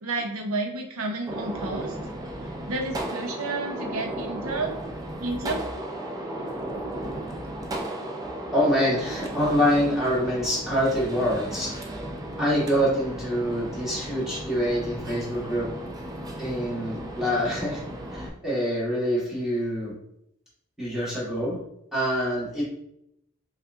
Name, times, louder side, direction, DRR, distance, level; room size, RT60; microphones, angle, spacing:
voice 1, 0.0-2.0 2.7-4.8 5.2-5.6, right 2 dB, 85° right, 3 dB, 0.7 m, -31 dB
Gunshot gunfire, 1.3-18.3, right 1 dB, 20° right, 0.4 m, -35 dB
voice 2, 8.5-11.7 12.4-15.7 16.4-17.8 18.1-19.9 20.8-21.6 21.9-22.6, equal, ahead, -8 dB, 1.3 m, -25 dB
5.3 x 2.5 x 2.5 m, 0.77 s
head